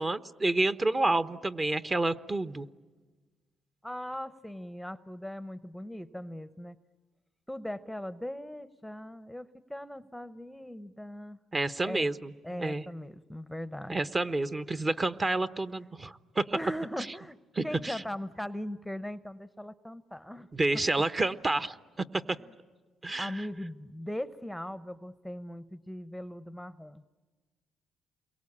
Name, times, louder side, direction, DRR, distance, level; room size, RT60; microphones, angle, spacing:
voice 1, 0.0-2.7 11.5-12.8 13.9-16.6 17.6-18.0 20.5-22.4 23.0-23.3, right 2 dB, 25° right, 12 dB, 1.0 m, -29 dB
voice 2, 3.8-6.8 7.5-11.4 11.8-12.1 12.4-14.0 14.7-14.8 16.5-17.4 17.6-20.5 21.0-21.1 23.2-27.1, left 1 dB, ahead, 14 dB, 0.8 m, -39 dB
29.0 x 23.0 x 8.7 m, 1.3 s
cardioid pair, 90°, 0 cm